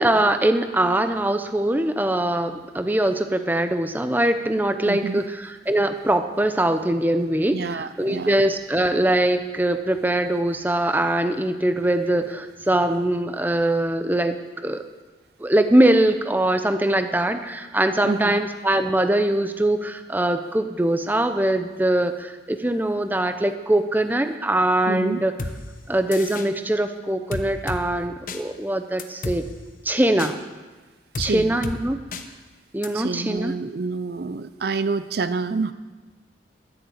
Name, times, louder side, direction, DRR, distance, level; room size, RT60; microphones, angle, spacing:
voice 1, 0.0-5.2 5.7-14.3 14.6-14.8 15.4-25.3 25.9-29.4 29.8-30.4 31.2-32.0 32.7-33.5, right 1 dB, 10° right, 8 dB, 0.6 m, -22 dB
voice 2, 4.9-5.3 7.5-8.3 18.0-18.4 24.9-25.2 31.2-31.6 32.9-35.7, right 4 dB, 55° right, 13 dB, 0.5 m, -28 dB
sound 1, 25.4-25.5 26.1-26.5 27.3-27.8 28.3-28.4 29.0-29.4 30.2-30.3 31.1-31.3 31.6-31.8 32.1-32.2 32.8-32.9, left 3 dB, 45° left, 1.0 m, -30 dB
11.0 x 10.5 x 7.9 m, 1.3 s
head